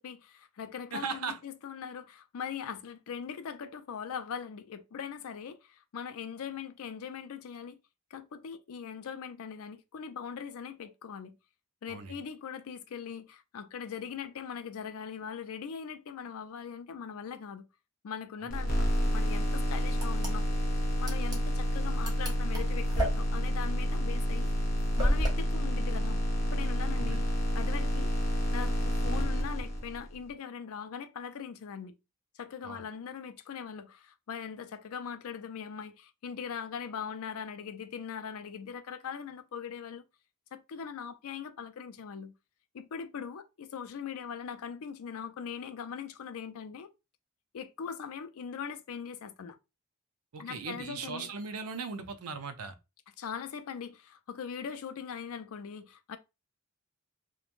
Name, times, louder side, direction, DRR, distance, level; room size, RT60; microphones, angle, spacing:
voice 1, 0.0-7.8 8.1-11.4 11.8-17.7 18.0-24.5 25.0-26.2 26.5-27.3 27.5-28.1 28.5-31.9 32.3-40.0 40.5-42.3 42.7-46.9 47.5-49.6 50.4-51.3 53.2-56.2, left 7 dB, 70° left, 0.4 m, -41 dB
voice 2, 0.9-1.4 11.9-12.2 18.7-18.9 27.0-27.3 32.6-32.8 50.3-52.7, right 5 dB, 80° right, 0.5 m, -38 dB
sound 1, 18.5-30.2, equal, 40° left, 0.7 m, -29 dB
sound 2, 19.9-25.3, equal, 20° right, 0.7 m, -34 dB
3.0 x 2.2 x 2.4 m
head